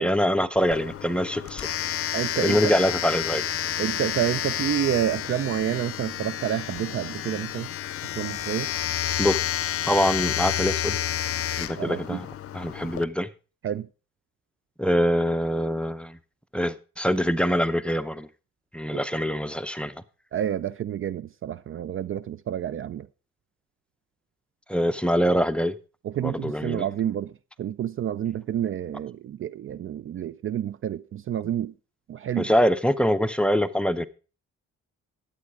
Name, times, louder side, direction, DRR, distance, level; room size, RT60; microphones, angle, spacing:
voice 1, 0.0-1.7 2.4-3.4 9.2-9.4 9.9-11.0 11.6-12.3 12.5-13.3 14.8-16.2 16.5-18.3 18.7-19.9 24.7-25.8 26.2-26.8 32.4-34.0, equal, 5° left, 0.7 m, -24 dB
Domestic sounds home sounds, 0.6-13.0, left 11 dB, 50° left, 0.6 m, -30 dB
voice 2, 2.1-2.6 3.8-7.7 8.1-8.7 11.8-12.2 13.6-13.9 20.3-23.1 26.0-27.3 27.6-31.7 32.1-32.5, right 10 dB, 45° right, 0.4 m, -29 dB
11.5 x 8.5 x 4.8 m
cardioid pair, 90°, 30 cm